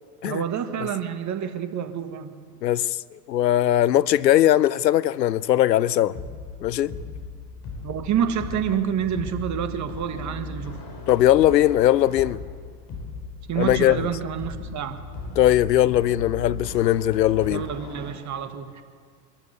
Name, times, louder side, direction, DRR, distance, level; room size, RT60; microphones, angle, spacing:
voice 1, 0.2-2.3 7.8-10.8 13.5-15.0 17.5-18.8, right 8 dB, 35° right, 1.8 m, -28 dB
voice 2, 2.6-3.0 3.3-6.2 6.6-6.9 11.1-12.4 13.6-14.1 15.4-17.7, left 13 dB, 85° left, 0.6 m, -20 dB
sound 1, 6.1-18.1, left 3 dB, 45° left, 4.8 m, -37 dB
23.0 x 14.5 x 8.2 m
hypercardioid pair, 85°, 49 cm